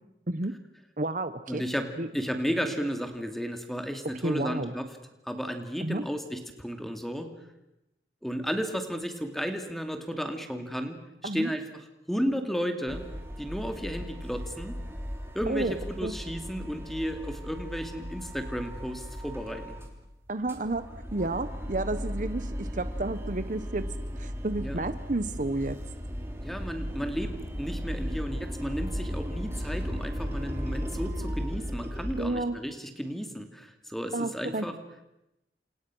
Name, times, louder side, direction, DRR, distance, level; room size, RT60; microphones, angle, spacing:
voice 1, 1.0-1.6 2.0-2.1 4.2-4.7 5.8-6.0 11.2-11.5 15.5-16.1 20.3-20.8 21.1-23.9 24.2-25.8 32.2-32.5 34.1-34.7, right 2 dB, 45° right, 12 dB, 0.9 m, -31 dB
voice 2, 1.5-1.9 2.1-4.9 5.2-7.3 8.2-11.0 11.2-13.1 13.4-14.8 15.3-19.8 24.6-24.8 26.4-34.7, equal, ahead, 6 dB, 2.5 m, -33 dB
sound 1, 12.9-20.0 20.3-32.3, equal, 15° right, 3.4 m, -36 dB
29.5 x 27.0 x 6.3 m, 0.91 s
head